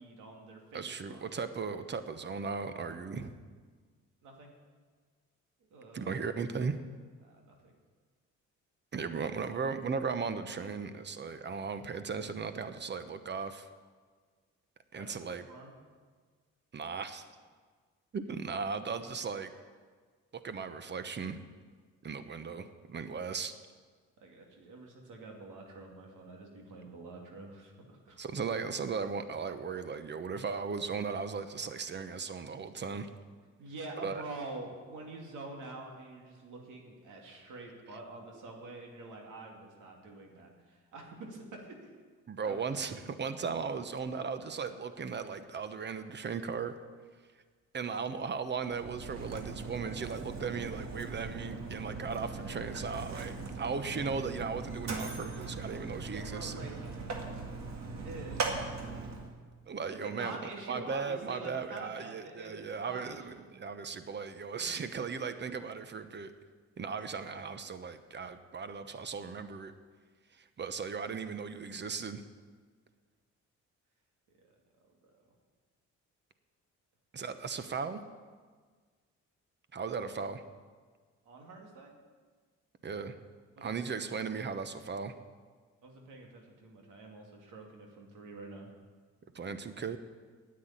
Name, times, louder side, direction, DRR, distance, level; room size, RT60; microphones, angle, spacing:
voice 1, 0.0-1.5 4.2-4.5 5.7-6.2 7.2-7.7 15.0-15.7 24.2-28.2 33.6-41.9 42.4-42.7 56.1-56.7 58.0-58.7 59.9-63.5 64.6-65.0 81.3-82.0 83.6-83.9 85.8-88.7, right 2 dB, 85° right, 1 dB, 2.4 m, -47 dB
voice 2, 0.7-3.3 5.9-6.8 8.9-13.7 14.9-15.4 16.7-17.2 18.1-19.5 20.4-21.4 22.0-23.5 28.2-33.1 34.0-34.2 42.3-46.7 47.7-56.7 59.7-60.4 60.7-66.3 66.8-69.7 70.4-72.2 77.1-78.0 79.7-80.4 82.8-83.2 83.6-85.1 89.3-90.0, right 5 dB, 35° right, 10 dB, 1.0 m, -37 dB
Mechanisms, 48.6-59.3, right 3 dB, 60° right, 1.9 m, -39 dB
9.7 x 8.6 x 8.9 m, 1.5 s
cardioid pair, 90°, 30 cm